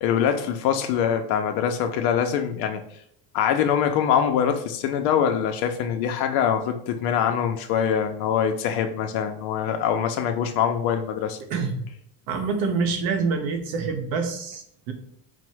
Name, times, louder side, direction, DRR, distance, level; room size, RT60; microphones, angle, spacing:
voice 1, 0.0-2.8 3.3-11.4, left 8 dB, 65° left, 5 dB, 0.5 m, -24 dB
voice 2, 11.5-11.8 12.3-14.9, right 4 dB, 65° right, 6 dB, 0.9 m, -26 dB
4.4 x 2.0 x 4.5 m, 0.70 s
cardioid pair, 165°, 39 cm